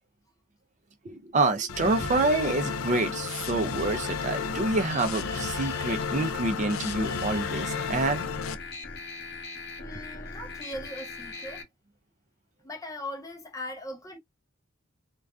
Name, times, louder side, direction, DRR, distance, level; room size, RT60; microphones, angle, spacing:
voice 1, 1.0-8.3, right 2 dB, 35° right, 0.4 m, -27 dB
sound 1, 1.7-8.5, left 5 dB, 85° left, 0.4 m, -32 dB
sound 2, 4.5-11.6, left 3 dB, 50° left, 0.8 m, -41 dB
voice 2, 9.8-11.6 12.6-14.2, left 1 dB, 15° left, 0.5 m, -39 dB
2.5 x 2.2 x 2.3 m
head